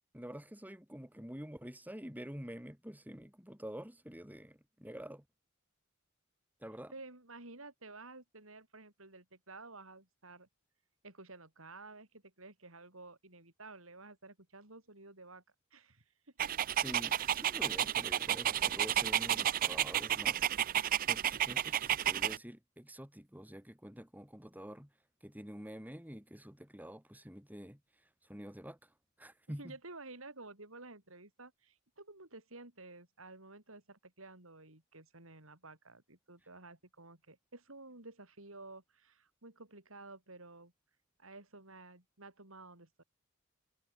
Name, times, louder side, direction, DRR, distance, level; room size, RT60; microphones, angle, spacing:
voice 1, 0.1-5.2 6.6-6.9 16.8-24.9 25.2-29.8, equal, 10° right, 4.9 m, -48 dB
voice 2, 6.9-10.5 11.0-15.4 15.7-16.0 16.4-16.6 29.6-40.7 41.2-43.0, right 3 dB, 75° right, 6.2 m, -52 dB
Dog, 16.4-22.4, right 10 dB, 45° right, 0.4 m, -32 dB
head